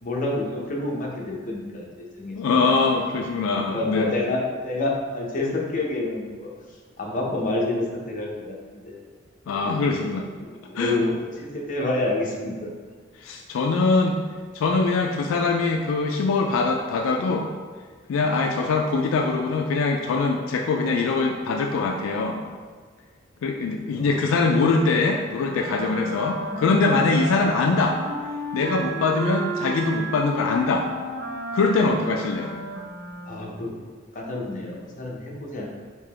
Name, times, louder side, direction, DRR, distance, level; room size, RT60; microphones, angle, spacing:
voice 1, 0.0-2.8 3.5-6.5 7.0-9.0 9.5-9.8 10.4-12.7 23.9-24.2 33.3-33.7 34.1-35.8, left 2 dB, 40° left, -2 dB, 0.6 m, -28 dB
voice 2, 2.4-4.1 9.5-10.3 10.7-11.0 13.2-14.2 14.5-17.5 18.1-22.4 23.4-28.0 28.5-30.9 31.5-32.5, left 3 dB, 80° left, 2 dB, 0.3 m, -23 dB
Wind instrument woodwind instrument, 25.5-33.7, right 2 dB, 55° right, 0.5 m, -33 dB
3.6 x 2.8 x 3.3 m, 1.5 s
head